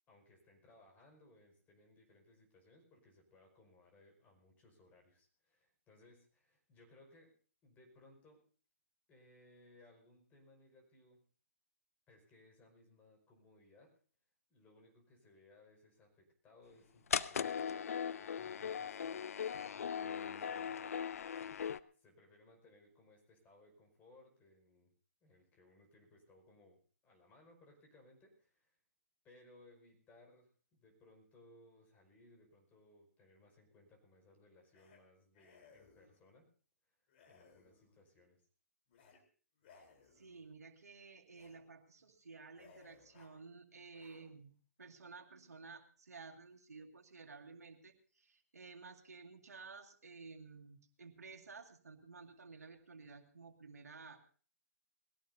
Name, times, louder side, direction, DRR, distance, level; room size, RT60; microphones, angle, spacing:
voice 1, 0.1-7.3 7.6-8.4 9.1-11.2 12.1-13.9 14.5-21.7 21.9-24.9 25.2-28.8 29.2-36.5 36.9-37.0 37.3-38.5, left 2 dB, 20° left, 1 dB, 5.3 m, -65 dB
sound 1, 17.1-21.8, left 7 dB, 65° left, 0.6 m, -39 dB
sound 2, 34.7-35.0 35.3-36.2 37.1-38.0 38.9-39.2 39.6-40.5 41.3-41.6 42.0-42.1 42.5-43.4 43.9-44.5, left 5 dB, 45° left, 3.8 m, -64 dB
voice 2, 40.1-44.5 44.8-54.2, right 4 dB, 80° right, 3 dB, 2.2 m, -54 dB
21.0 x 17.0 x 2.7 m, 0.42 s
hypercardioid pair, 135°, 8 cm